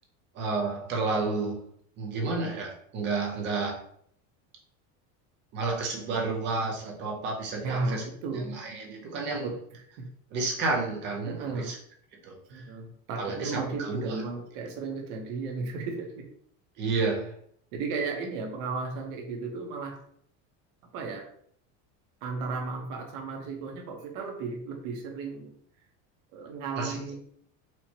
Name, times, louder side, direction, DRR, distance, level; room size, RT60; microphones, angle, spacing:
voice 1, 0.3-1.6 2.0-3.8 5.5-8.0 8.3-9.5 10.3-11.8 12.2-12.6 13.2-14.2 16.8-17.3 26.8-27.1, right 3 dB, 30° right, 0 dB, 0.5 m, -31 dB
voice 2, 7.6-8.5 9.4-10.1 11.2-11.7 12.5-16.3 17.7-20.0 20.9-21.3 22.2-25.5 26.3-27.1, right 4 dB, 50° right, 2 dB, 0.8 m, -34 dB
4.4 x 2.1 x 2.8 m, 0.64 s
cardioid pair, 175°, 38 cm